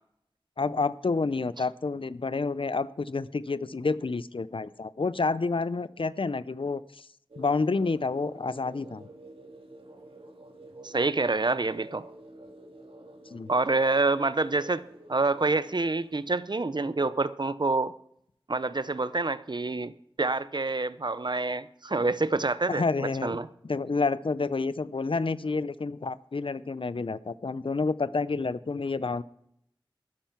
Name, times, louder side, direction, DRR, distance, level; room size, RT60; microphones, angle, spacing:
voice 1, 0.6-7.1 7.4-9.1 13.3-13.5 22.7-23.4 23.6-29.2, left 4 dB, 70° left, 17 dB, 0.5 m, -29 dB
sound 1, 7.3-16.3, right 1 dB, 80° right, 2.0 m, -49 dB
voice 2, 10.8-12.1 13.5-14.8 15.1-17.9 18.5-19.9 20.2-23.5, right 3 dB, 55° right, 15 dB, 0.6 m, -27 dB
13.0 x 10.0 x 5.9 m, 0.72 s
wide cardioid pair, 50°, 9 cm